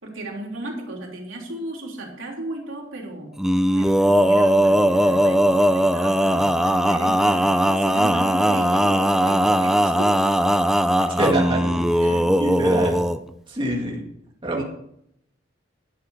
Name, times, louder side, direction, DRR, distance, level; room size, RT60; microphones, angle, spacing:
voice 1, 0.0-3.4 3.8-10.2 12.0-12.5, right 1 dB, 85° right, -1 dB, 3.4 m, -35 dB
Male singing, 3.4-13.2, equal, ahead, 0.4 m, -19 dB
voice 2, 11.2-13.0 13.5-14.0 14.4-14.6, right 1 dB, 25° right, -2 dB, 1.9 m, -26 dB
11.5 x 7.3 x 6.4 m, 0.75 s
head